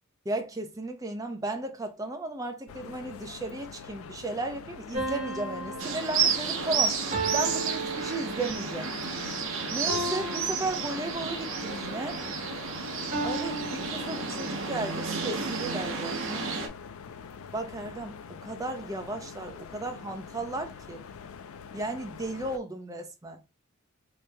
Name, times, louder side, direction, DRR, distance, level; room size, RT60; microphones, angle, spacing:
voice 1, 0.3-7.0 7.3-8.9 9.7-12.2 13.2-16.5 17.5-21.0 21.7-23.4, right 2 dB, 15° right, 0.5 m, -35 dB
sound 1, 2.7-22.6, left 6 dB, 75° left, 0.4 m, -45 dB
sound 2, 4.9-8.7 9.9-11.4 13.1-14.7, right 2 dB, 30° right, 1.4 m, -35 dB
sound 3, 5.8-16.7, right 5 dB, 65° right, 0.7 m, -31 dB
3.0 x 2.7 x 3.3 m
head